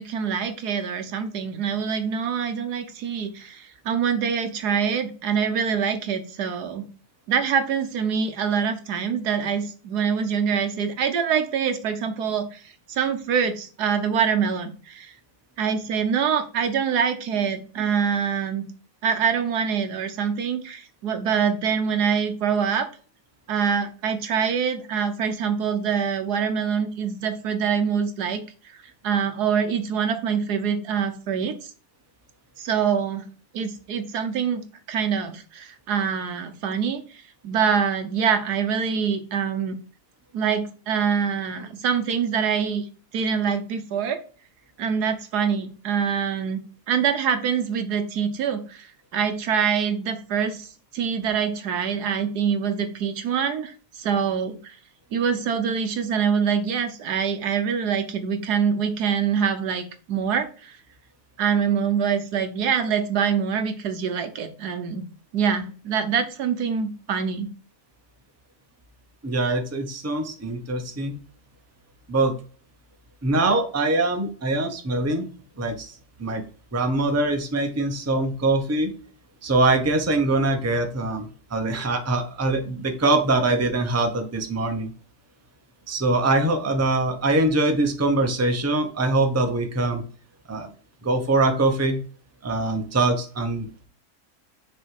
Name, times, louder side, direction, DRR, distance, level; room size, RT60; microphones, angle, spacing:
voice 1, 0.0-6.8 7.3-12.6 12.9-15.1 15.6-18.7 19.0-22.9 23.5-28.4 29.0-31.5 32.6-33.3 33.5-37.0 37.4-39.8 40.3-42.8 43.1-44.2 44.8-46.6 46.9-50.7 50.9-54.8 55.1-60.8 61.4-65.1 65.3-67.5, right 7 dB, 80° right, 8 dB, 1.5 m, -25 dB
voice 2, 69.2-71.1 72.1-72.3 73.2-75.2 75.6-75.9 76.2-76.4 76.7-78.9 79.4-84.9 85.9-90.0 90.5-90.7 91.0-92.0 92.4-93.7, right 2 dB, 15° right, 5 dB, 0.7 m, -23 dB
6.4 x 3.3 x 4.7 m, 0.39 s
omnidirectional pair, 1.7 m